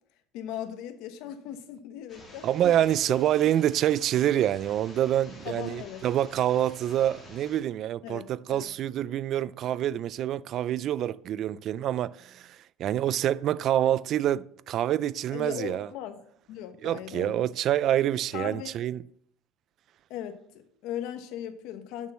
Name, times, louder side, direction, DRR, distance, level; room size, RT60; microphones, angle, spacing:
voice 1, 0.3-2.5 5.4-6.0 8.0-8.7 15.3-16.2 16.5-17.5 18.3-18.8 20.1-22.1, left 10 dB, 65° left, 1.2 m, -38 dB
sound 1, 2.1-7.6, left 2 dB, 20° left, 3.1 m, -50 dB
voice 2, 2.4-15.9 16.8-19.0, right 11 dB, 45° right, 0.3 m, -26 dB
7.0 x 6.2 x 7.6 m
cardioid pair, 150°, 0 cm